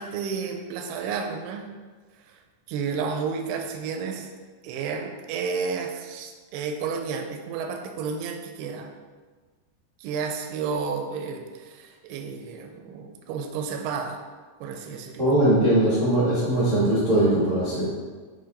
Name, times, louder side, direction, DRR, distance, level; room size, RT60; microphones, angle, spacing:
voice 1, 0.0-1.7 2.7-4.3 4.6-8.9 10.0-14.2 14.6-15.4, right 5 dB, 85° right, 4 dB, 2.5 m, -31 dB
voice 2, 15.2-17.8, right 1 dB, 65° right, -10 dB, 0.7 m, -20 dB
7.8 x 3.2 x 4.0 m, 1.4 s
omnidirectional pair, 4.5 m